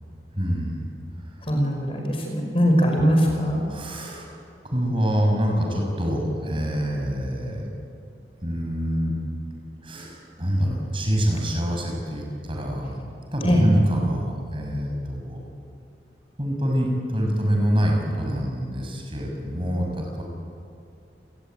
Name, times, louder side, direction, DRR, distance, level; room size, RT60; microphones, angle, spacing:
voice 1, 0.3-0.8 3.3-4.3 4.6-7.7 8.4-9.1 9.8-13.0 13.3-15.4 16.4-19.9 20.1-20.2, equal, 30° right, 0 dB, 6.6 m, -25 dB
voice 2, 1.4-3.7 13.4-13.7, equal, 30° left, 2 dB, 5.4 m, -21 dB
29.0 x 21.0 x 9.2 m, 2.6 s
head